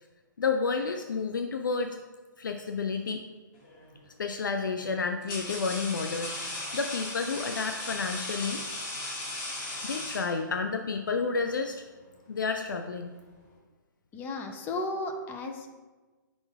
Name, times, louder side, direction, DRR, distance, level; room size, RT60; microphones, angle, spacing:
voice 1, 0.4-2.0 2.4-3.2 4.2-8.6 9.8-11.8 12.3-13.1, left 4 dB, 75° left, 6 dB, 0.4 m, -30 dB
sound 1, 3.6-4.0 4.8-10.7, left 2 dB, 35° left, 1.7 m, -37 dB
voice 2, 14.1-15.7, left 2 dB, 15° left, 5 dB, 0.6 m, -34 dB
5.1 x 4.0 x 4.6 m, 1.3 s
figure-of-eight pair, 130°, 11 cm